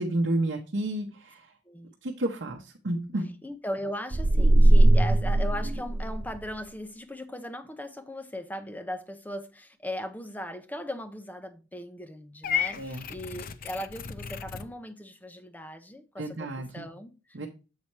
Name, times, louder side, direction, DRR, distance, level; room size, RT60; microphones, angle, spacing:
voice 1, 0.0-1.5 2.0-3.2 12.8-13.1 16.2-16.9 17.3-17.5, right 1 dB, 65° right, 0.8 m, -30 dB
voice 2, 3.4-17.5, equal, 10° left, 0.7 m, -38 dB
sound 1, 4.1-6.5, right 1 dB, 30° right, 0.4 m, -20 dB
Purr / Meow, 12.4-14.7, left 7 dB, 50° left, 0.5 m, -33 dB
7.6 x 4.2 x 4.5 m
head